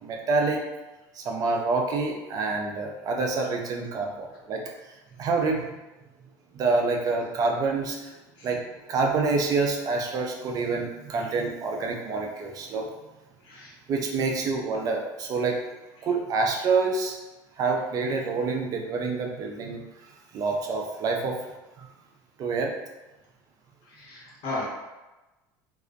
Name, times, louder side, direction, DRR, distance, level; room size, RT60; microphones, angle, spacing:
voice 1, 0.0-0.6 1.2-4.6 5.2-5.6 6.5-8.1 8.4-12.9 13.9-15.6 16.0-17.2 17.6-19.8 20.3-21.4 21.8-21.9 22.4-22.7, right 4 dB, 40° right, 1 dB, 0.4 m, -27 dB
voice 2, 23.9-24.6, left 2 dB, 60° left, -5 dB, 1.0 m, -36 dB
2.5 x 2.0 x 2.4 m, 1.1 s
supercardioid pair, 120°, 9 cm